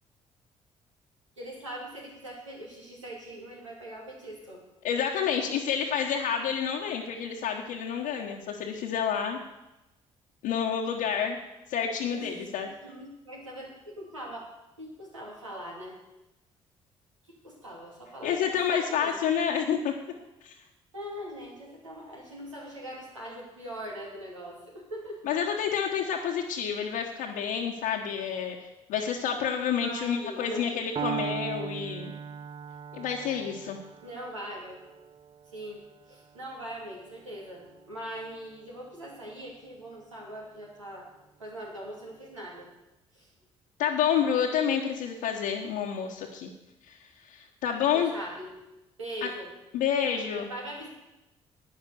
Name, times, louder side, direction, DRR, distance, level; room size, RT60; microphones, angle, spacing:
voice 1, 1.4-4.6 12.1-12.5 12.8-14.5 14.8-16.0 17.2-18.3 18.7-19.3 20.9-25.2 29.8-30.8 34.0-34.8 35.5-41.1 41.4-42.7 43.1-43.3 47.9-48.5 49.0-49.5 50.3-51.0, right 1 dB, 85° right, -3 dB, 2.8 m, -41 dB
voice 2, 4.8-9.4 10.4-11.4 11.7-12.7 18.2-19.9 20.4-20.5 25.2-32.1 32.9-33.8 43.8-46.5 46.8-48.1 49.2-49.3 49.7-50.5, left 8 dB, 65° left, -3 dB, 1.2 m, -29 dB
Piano, 31.0-38.9, right 8 dB, 30° right, 0.5 m, -40 dB
11.5 x 9.4 x 6.9 m, 0.97 s
figure-of-eight pair, 45°, 16 cm